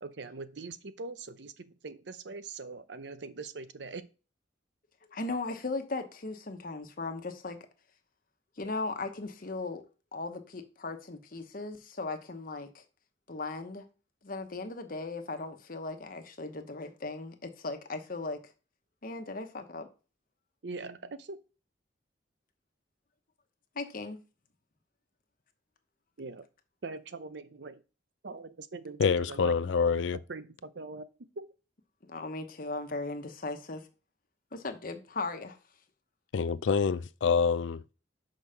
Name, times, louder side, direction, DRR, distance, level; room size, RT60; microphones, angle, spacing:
voice 1, 0.0-4.1 20.6-21.4 26.2-26.5 26.8-27.8 28.2-29.0 29.3-29.5 30.3-31.1 31.3-31.5, right 3 dB, 65° right, 0.7 m, -42 dB
voice 2, 5.1-7.6 8.6-9.8 10.1-12.8 13.3-13.9 14.2-18.4 19.0-19.9 23.7-24.2 32.0-33.8 34.5-35.6, left 3 dB, 50° left, 1.1 m, -37 dB
voice 3, 29.0-30.2 36.3-37.9, left 5 dB, 80° left, 0.4 m, -26 dB
6.1 x 5.2 x 5.7 m
head